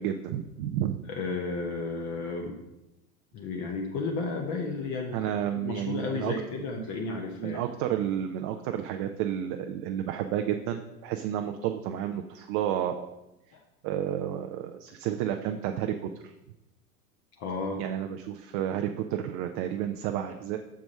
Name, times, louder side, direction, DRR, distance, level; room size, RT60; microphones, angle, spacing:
voice 1, 0.0-1.0 5.1-6.3 7.4-13.2 13.8-16.3 17.8-20.6, right 10 dB, 40° right, 6 dB, 0.5 m, -31 dB
voice 2, 1.1-2.6 3.3-7.6 13.5-13.6 17.4-17.8, left 4 dB, 40° left, 1 dB, 0.9 m, -33 dB
5.9 x 4.7 x 5.4 m, 0.92 s
hypercardioid pair, 90°, 45 cm